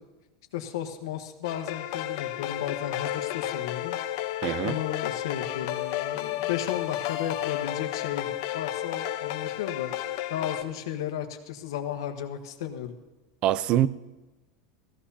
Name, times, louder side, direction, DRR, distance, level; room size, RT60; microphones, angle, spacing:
voice 1, 0.5-4.0 4.6-12.9, left 10 dB, 85° left, 1.3 m, -34 dB
sound 1, 1.4-10.6, left 13 dB, 65° left, 0.9 m, -32 dB
voice 2, 4.4-4.8 13.4-13.9, right 12 dB, 45° right, 0.5 m, -24 dB
16.5 x 15.0 x 2.8 m
supercardioid pair, 125°, 2 cm